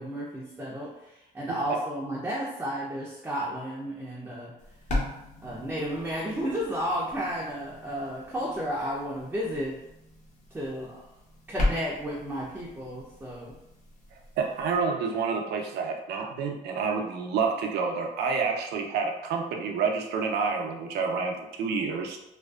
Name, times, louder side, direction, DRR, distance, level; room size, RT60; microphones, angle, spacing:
voice 1, 0.0-4.5 5.4-9.8 10.5-11.0 11.5-13.5, equal, 10° right, -5 dB, 0.4 m, -32 dB
sound 1, 4.6-14.8, left 2 dB, 45° left, 0.7 m, -37 dB
voice 2, 14.4-22.2, right 5 dB, 75° right, 3 dB, 0.5 m, -28 dB
2.5 x 2.2 x 2.3 m, 0.88 s
cardioid pair, 110°, 17 cm